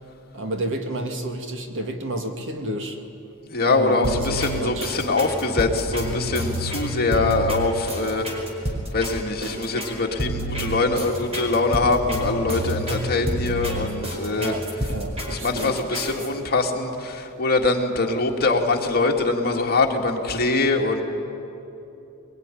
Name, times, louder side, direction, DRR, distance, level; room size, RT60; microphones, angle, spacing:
voice 1, 0.3-3.0 3.6-4.9 7.1-7.5 14.3-15.8, right 1 dB, 60° right, 5 dB, 2.2 m, -30 dB
voice 2, 3.5-8.2 8.9-14.5 15.3-21.0, left 3 dB, 45° left, 1 dB, 2.3 m, -23 dB
sound 1, 4.0-16.3, right 1 dB, 30° right, 4.5 m, -29 dB
22.0 x 22.0 x 10.0 m, 2.9 s
head